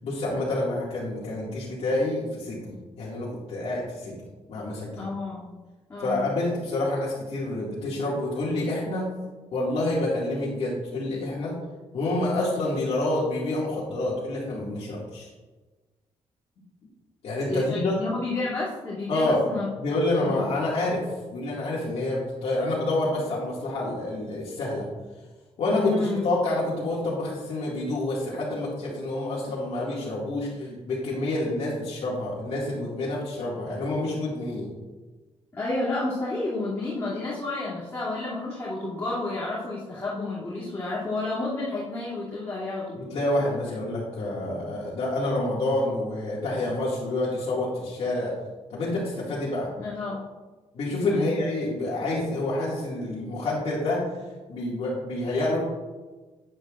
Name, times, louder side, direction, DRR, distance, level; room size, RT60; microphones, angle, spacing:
voice 1, 0.0-4.2 4.5-5.0 6.0-9.1 9.5-11.5 11.9-15.3 17.2-18.0 19.1-19.4 19.8-21.0 21.3-24.9 25.6-34.7 42.9-48.3 48.7-49.7 50.7-54.0 54.5-55.6, left 2 dB, 65° left, -7 dB, 2.2 m, -28 dB
voice 2, 5.0-5.4 5.9-6.3 17.5-19.7 20.2-20.4 25.7-26.2 35.5-43.0 49.8-50.2 51.1-51.3, left 2 dB, 25° left, -10 dB, 2.7 m, -30 dB
11.0 x 10.0 x 2.5 m, 1.3 s
wide cardioid pair, 165°, 11 cm